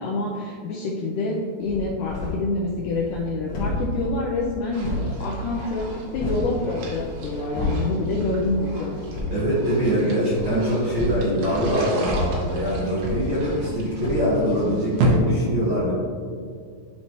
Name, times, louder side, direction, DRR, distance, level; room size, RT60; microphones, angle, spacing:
voice 1, 0.0-9.0, left 2 dB, 90° left, -3 dB, 1.8 m, -27 dB
sound 1, 1.6-2.5 2.9-6.5 6.9-8.0 8.4-8.7 9.0-9.4 10.3-13.7 14.0-14.3, left 2 dB, 60° left, 1.2 m, -31 dB
sound 2, 4.7-15.2, right 1 dB, 75° right, 2.9 m, -33 dB
voice 2, 9.3-15.9, equal, 55° right, -9 dB, 1.4 m, -23 dB
11.5 x 4.2 x 3.0 m, 2.1 s
omnidirectional pair, 4.3 m